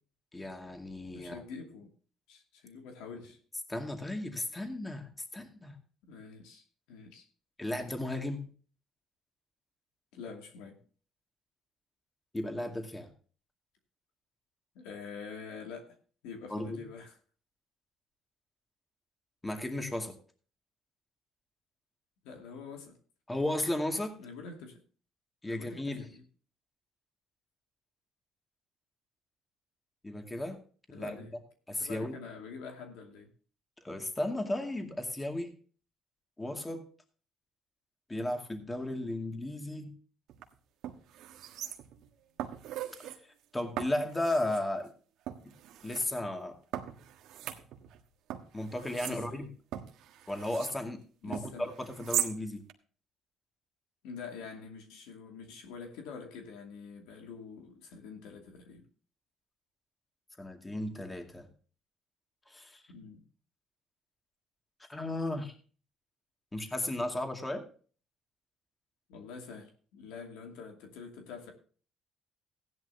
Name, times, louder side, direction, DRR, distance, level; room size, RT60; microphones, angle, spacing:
voice 1, 0.3-1.4 3.7-5.8 7.6-8.5 12.3-13.1 16.5-16.8 19.4-20.1 23.3-24.2 25.4-26.1 30.0-30.6 30.9-31.2 31.7-32.2 33.8-35.5 36.4-36.9 38.1-39.9 43.5-44.9 45.8-46.6 48.5-49.5 50.3-52.7 60.4-61.5 62.5-62.8 64.9-65.5 66.5-67.6, left 1 dB, 15° left, 2.3 m, -35 dB
voice 2, 1.1-1.9 2.3-3.4 6.0-7.2 10.1-10.8 14.7-16.0 16.2-17.2 22.2-23.0 24.2-24.8 25.5-26.2 30.9-31.4 31.8-33.3 49.0-49.4 51.2-51.7 54.0-58.8 62.9-63.2 69.1-71.5, left 5 dB, 90° left, 2.5 m, -46 dB
sound 1, 40.3-40.4 40.8-42.1 42.4-43.2 43.8-44.6 45.3-46.0 46.7-48.0 48.3-50.8 51.3-52.3 52.7-52.8, right 11 dB, 75° right, 1.4 m, -39 dB
15.5 x 10.5 x 2.8 m
cardioid pair, 95°, 0 cm